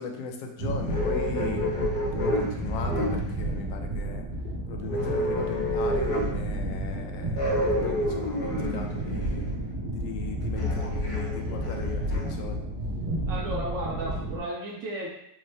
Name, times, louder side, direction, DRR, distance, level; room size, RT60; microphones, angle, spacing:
voice 1, 0.0-1.7 2.1-4.3 4.7-7.4 7.8-9.5 9.9-12.7, left 5 dB, 85° left, 3 dB, 1.3 m, -38 dB
sound 1, 0.6-14.4, right 1 dB, 75° right, 1.5 m, -32 dB
sound 2, 0.9-3.6 4.9-6.5 7.3-9.7 10.6-12.3, left 1 dB, 60° left, 0.5 m, -30 dB
voice 2, 13.3-15.1, right 1 dB, 50° right, -4 dB, 1.1 m, -34 dB
5.2 x 2.1 x 3.2 m, 0.78 s
omnidirectional pair, 2.0 m